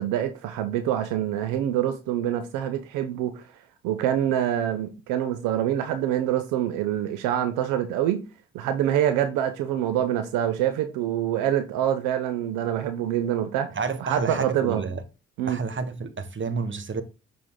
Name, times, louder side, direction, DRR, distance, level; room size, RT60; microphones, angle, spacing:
voice 1, 0.0-3.4 3.8-8.2 8.5-14.8 15.4-15.6, right 11 dB, 85° right, 0.7 m, -25 dB
voice 2, 13.7-15.0 15.5-17.0, right 4 dB, 40° right, 1.3 m, -30 dB
6.7 x 3.9 x 3.7 m
hypercardioid pair, 40°, 31 cm